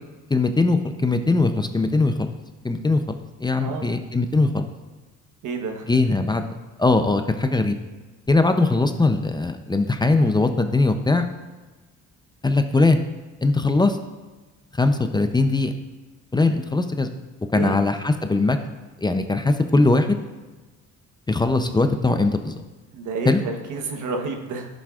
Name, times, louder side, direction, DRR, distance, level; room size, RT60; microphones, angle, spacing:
voice 1, 0.3-2.3 2.6-3.0 3.4-4.7 5.9-6.4 6.8-7.8 8.3-11.3 12.4-13.0 13.4-14.0 14.8-15.7 16.3-17.1 17.5-18.6 19.0-20.2 21.3-22.5 23.3-23.4, left 3 dB, 15° left, 7 dB, 0.5 m, -20 dB
voice 2, 3.6-4.0 5.4-5.9 17.5-17.8 22.9-24.7, right 4 dB, 80° right, 4 dB, 1.2 m, -29 dB
11.0 x 7.5 x 2.4 m, 1.2 s
cardioid pair, 90°, 30 cm